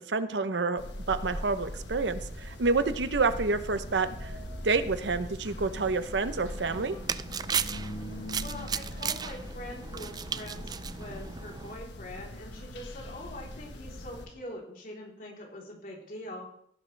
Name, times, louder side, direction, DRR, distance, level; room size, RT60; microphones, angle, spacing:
voice 1, 0.1-4.3 4.6-7.0, right 4 dB, 90° right, 12 dB, 0.8 m, -28 dB
sound 1, 0.8-14.3, left 1 dB, 90° left, 1.4 m, -42 dB
sound 2, 1.1-10.0, equal, 65° right, 2.6 m, -46 dB
sound 3, 6.6-11.7, right 7 dB, 25° right, 0.3 m, -35 dB
voice 2, 8.4-16.5, left 1 dB, 50° left, -2 dB, 3.7 m, -43 dB
16.5 x 10.5 x 3.4 m, 0.71 s
head